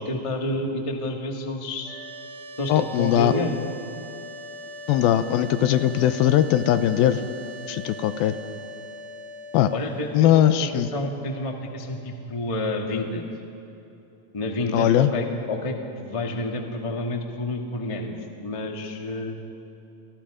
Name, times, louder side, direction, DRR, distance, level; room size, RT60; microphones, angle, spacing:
voice 1, 0.0-2.0 2.6-3.6 9.7-13.2 14.3-19.4, left 1 dB, 25° left, 2 dB, 0.6 m, -29 dB
sound 1, 1.8-12.9, left 1 dB, 75° right, 3.5 m, -41 dB
voice 2, 2.7-3.3 4.9-7.3 7.7-8.4 9.5-9.7 10.1-10.9 14.7-15.1, left 11 dB, 80° left, 11 dB, 2.6 m, -20 dB
29.0 x 24.5 x 5.0 m, 2.9 s
omnidirectional pair, 4.3 m